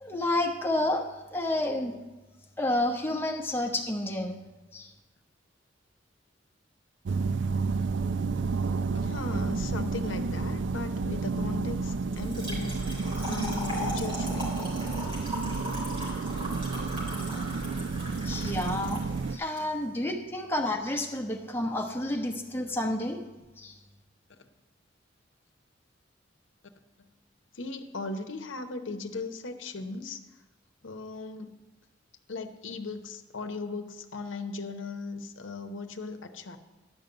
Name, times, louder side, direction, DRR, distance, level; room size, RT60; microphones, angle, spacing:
voice 1, 0.0-2.0 2.6-4.4 4.7-4.9 18.2-19.0 19.3-23.2 23.6-23.7, left 1 dB, 10° left, 1 dB, 1.1 m, -30 dB
sound 1, 7.0-19.4, right 4 dB, 70° right, 0.4 m, -31 dB
voice 2, 9.0-12.9 13.2-14.5 16.4-16.5 27.0-27.1 27.5-30.2 30.8-31.5 32.3-36.6, left 3 dB, 85° left, 7 dB, 0.8 m, -38 dB
Trickle dribble / Fill (with liquid), 12.1-19.6, equal, 30° right, 3.5 m, -38 dB
11.0 x 5.3 x 7.8 m, 1.2 s
head